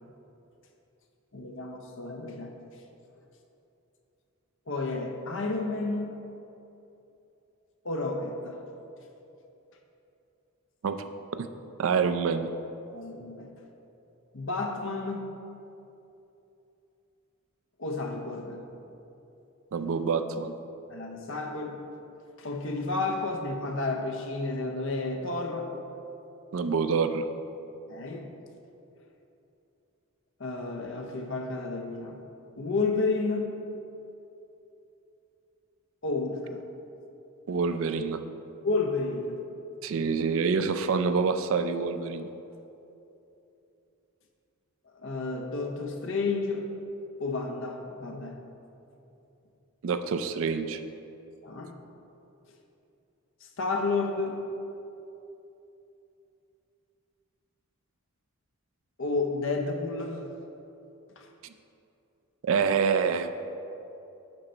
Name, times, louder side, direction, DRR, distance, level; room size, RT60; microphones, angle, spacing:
voice 1, 1.3-2.5 4.7-6.2 7.8-8.6 12.9-13.5 14.3-15.3 17.8-18.6 20.9-21.8 22.4-25.7 27.9-28.3 30.4-32.2 32.6-33.5 36.0-36.6 38.6-39.4 44.9-46.7 47.2-48.4 51.4-51.7 53.4-54.4 59.0-60.2 61.2-61.3, left 3 dB, 60° left, 3 dB, 0.7 m, -31 dB
voice 2, 10.8-11.5 11.8-12.5 19.7-20.6 26.5-27.3 37.5-38.2 39.8-42.3 49.8-50.8 62.4-63.3, right 5 dB, 60° right, 10 dB, 0.4 m, -27 dB
11.0 x 3.9 x 4.4 m, 2.9 s
head